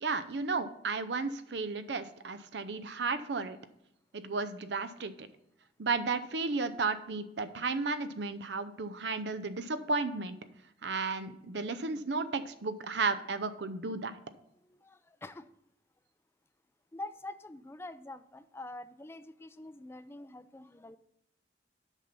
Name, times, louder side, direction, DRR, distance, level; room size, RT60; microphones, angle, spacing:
voice 1, 0.0-3.6 4.1-5.3 5.8-10.4 10.8-14.1, right 4 dB, 75° right, 12 dB, 0.6 m, -33 dB
voice 2, 14.6-15.5 16.9-21.0, left 2 dB, 15° left, 12 dB, 0.3 m, -45 dB
8.2 x 5.8 x 5.3 m, 0.80 s
head